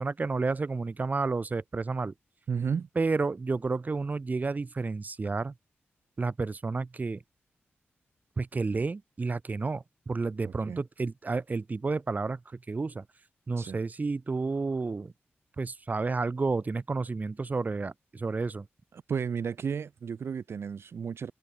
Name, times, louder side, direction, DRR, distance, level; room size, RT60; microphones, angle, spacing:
voice 1, 0.0-2.1 2.9-5.5 6.2-7.2 8.4-13.0 13.5-15.1 15.6-18.7, right 3 dB, 40° right, 1.4 m, -31 dB
voice 2, 2.5-2.9 10.4-10.8 13.6-13.8 19.1-21.3, right 6 dB, 65° right, 0.9 m, -33 dB
cardioid pair, 75°, 4 cm